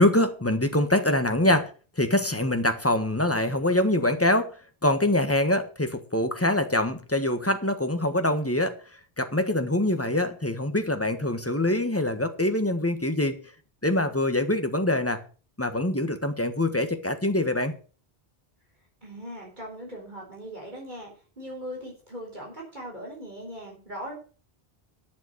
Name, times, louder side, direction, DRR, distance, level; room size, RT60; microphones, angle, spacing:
voice 1, 0.0-1.7 2.0-4.5 4.8-8.8 9.2-13.4 13.8-15.2 15.6-17.8, left 1 dB, 15° left, 8 dB, 1.4 m, -24 dB
voice 2, 19.0-24.1, equal, 45° right, -2 dB, 4.4 m, -39 dB
11.0 x 7.0 x 6.8 m, 0.38 s
omnidirectional pair, 1.0 m